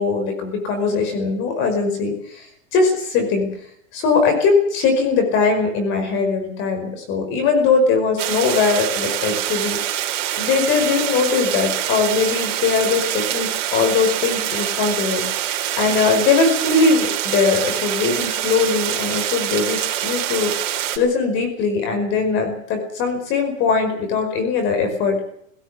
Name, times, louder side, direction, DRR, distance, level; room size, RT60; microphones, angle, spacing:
voice 1, 0.0-2.5 2.7-3.5 3.9-10.0 10.4-25.2, left 4 dB, 30° left, 5 dB, 5.2 m, -20 dB
sound 1, 8.2-21.0, right 12 dB, 60° right, 3.9 m, -25 dB
19.0 x 17.5 x 8.3 m, 0.67 s
supercardioid pair, 165°, 40 cm